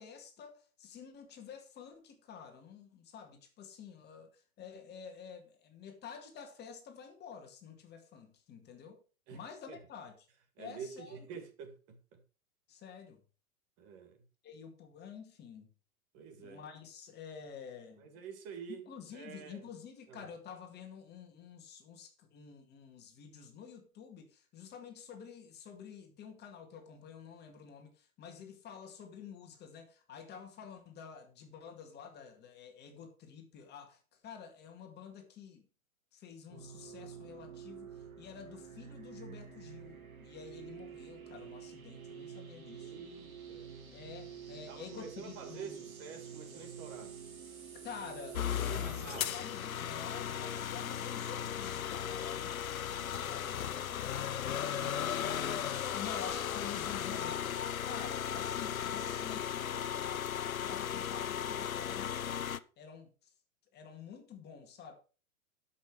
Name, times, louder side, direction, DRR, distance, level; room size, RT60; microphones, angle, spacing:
voice 1, 0.0-9.0 9.3-10.3 10.6-11.3 12.7-13.2 14.4-15.7 16.4-18.1 18.7-35.7 36.1-43.0 43.9-45.9 47.8-48.4 48.7-54.8 55.1-62.2 62.8-63.3 63.7-64.9, left 7 dB, 25° left, 2.0 m, -49 dB
voice 2, 10.6-12.2 13.8-14.2 16.1-16.6 18.0-18.9 19.1-19.6 20.1-20.3 42.8-43.7 44.7-47.2 48.7-49.4 54.7-55.1, right 6 dB, 35° right, 2.0 m, -48 dB
sound 1, 36.5-49.2, right 7 dB, 75° right, 2.4 m, -48 dB
sound 2, 48.3-62.6, left 9 dB, 75° left, 0.7 m, -36 dB
12.5 x 5.9 x 4.9 m
figure-of-eight pair, 110°, 42 cm